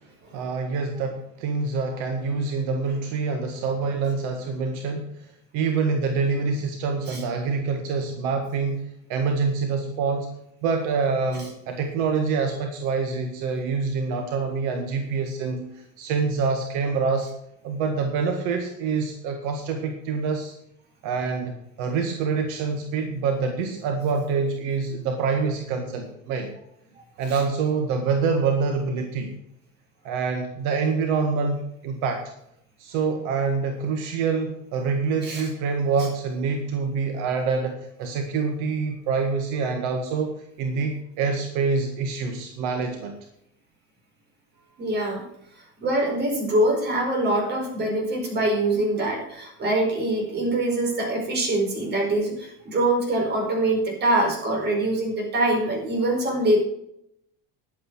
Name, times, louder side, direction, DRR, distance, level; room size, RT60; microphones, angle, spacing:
voice 1, 0.3-5.1 5.5-8.8 9.1-10.3 10.6-15.7 16.0-17.3 17.6-20.5 21.0-26.5 27.2-29.3 30.0-32.2 32.8-43.1, right 5 dB, 70° right, 4 dB, 1.8 m, -26 dB
voice 2, 44.8-45.2 45.8-56.6, right 1 dB, 35° right, 1 dB, 4.8 m, -24 dB
11.0 x 8.8 x 6.2 m, 0.75 s
cardioid pair, 140°, 31 cm